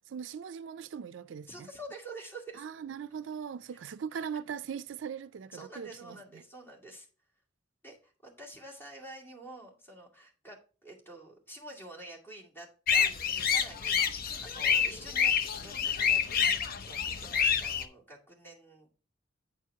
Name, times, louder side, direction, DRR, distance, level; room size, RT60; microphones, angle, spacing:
voice 1, 0.1-1.7 2.6-6.4, right 7 dB, 75° right, 0.4 m, -40 dB
voice 2, 1.5-2.7 3.7-3.8 4.1-4.3 5.5-7.1 7.8-13.1 13.4-18.9, right 1 dB, 10° left, 2.3 m, -48 dB
sound 1, 12.9-17.8, left 7 dB, 50° left, 0.7 m, -28 dB
8.9 x 4.6 x 4.6 m
head